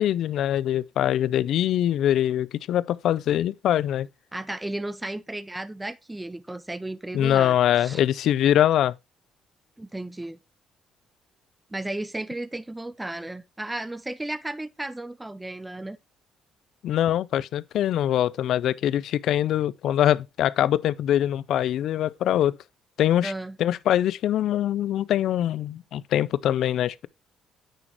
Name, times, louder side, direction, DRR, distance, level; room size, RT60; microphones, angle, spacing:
voice 1, 0.0-4.1 7.1-8.9 16.8-22.6 23.0-23.3 23.6-27.1, left 11 dB, 70° left, 0.4 m, -23 dB
voice 2, 4.3-8.0 9.8-10.4 11.7-16.0 23.2-23.6, right 1 dB, 10° right, 0.4 m, -34 dB
9.1 x 6.3 x 2.9 m
cardioid pair, 120°, 0 cm